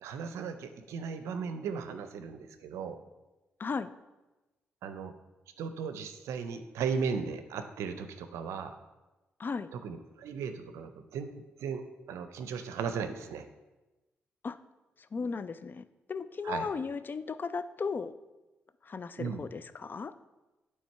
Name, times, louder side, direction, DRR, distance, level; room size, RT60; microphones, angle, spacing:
voice 1, 0.0-3.0 4.8-5.1 5.6-8.7 9.7-13.5 16.4-16.7 19.2-19.4, right 6 dB, 80° right, 9 dB, 0.5 m, -36 dB
voice 2, 3.6-3.9 9.4-9.7 14.4-14.6 15.1-18.1 18.8-20.1, left 5 dB, 45° left, 13 dB, 0.4 m, -36 dB
8.5 x 3.3 x 4.5 m, 1.1 s
hypercardioid pair, 45°, 5 cm